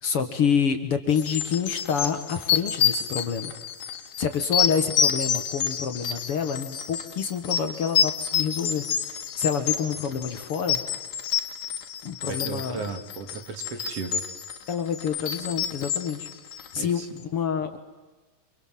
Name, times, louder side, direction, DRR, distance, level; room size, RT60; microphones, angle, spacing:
voice 1, 0.0-3.5 4.2-10.8 12.0-12.8 14.7-16.3 16.7-17.0 17.3-17.8, left 6 dB, 50° left, 8 dB, 2.3 m, -27 dB
sound 1, 1.1-17.0, left 8 dB, 90° left, 3.2 m, -28 dB
voice 2, 12.3-14.2 16.7-17.2, right 4 dB, 55° right, 7 dB, 3.0 m, -35 dB
29.0 x 26.0 x 7.7 m, 1.2 s
omnidirectional pair, 3.5 m